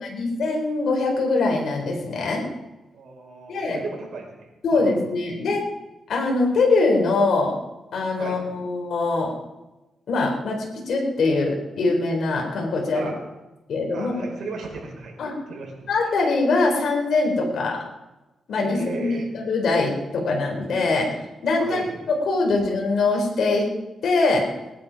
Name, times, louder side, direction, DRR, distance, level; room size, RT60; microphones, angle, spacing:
voice 1, 0.0-2.4 3.5-3.8 4.6-5.6 6.1-7.6 7.9-9.3 10.1-13.1 13.7-14.3 15.2-15.3 15.9-17.8 18.5-21.1 21.4-21.8 22.1-23.7 24.0-24.5, left 3 dB, 70° left, 0 dB, 3.9 m, -22 dB
voice 2, 2.9-4.5 4.7-4.9 8.2-8.4 12.9-13.1 13.9-15.1 15.5-16.1 18.6-19.3 21.6-22.0, right 4 dB, 70° right, 0 dB, 5.6 m, -35 dB
20.5 x 10.5 x 5.2 m, 1.0 s
cardioid pair, 95°, 0 cm